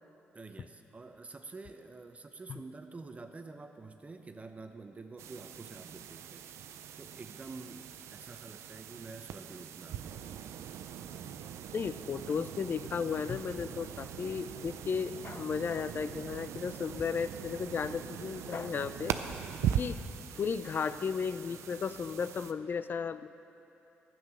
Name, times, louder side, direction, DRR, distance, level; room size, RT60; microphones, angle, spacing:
voice 1, 0.3-6.4 7.0-10.2, right 3 dB, 30° right, 6 dB, 0.8 m, -48 dB
sound 1, 5.2-22.5, right 9 dB, 80° right, 0.5 m, -41 dB
voice 2, 11.7-19.2 19.6-20.0 20.3-23.3, left 6 dB, 45° left, 13 dB, 0.4 m, -34 dB
12.0 x 8.8 x 6.3 m, 3.0 s
cardioid pair, 70°, 5 cm